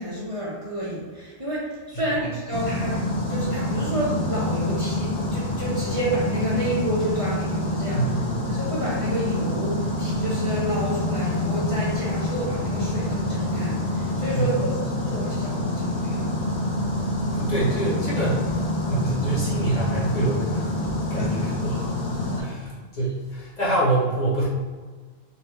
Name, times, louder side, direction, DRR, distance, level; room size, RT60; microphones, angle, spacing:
voice 1, 0.0-3.0 3.3-8.0 8.5-16.4 21.2-21.3 22.4-22.5, right 1 dB, 35° right, -8 dB, 0.7 m, -30 dB
sound 1, 2.5-22.4, left 1 dB, 75° left, 1.2 m, -26 dB
voice 2, 7.9-8.4 14.3-14.7 17.3-21.9 22.4-24.5, right 2 dB, 40° left, -7 dB, 1.1 m, -26 dB
4.0 x 2.5 x 3.1 m, 1.4 s
omnidirectional pair, 1.1 m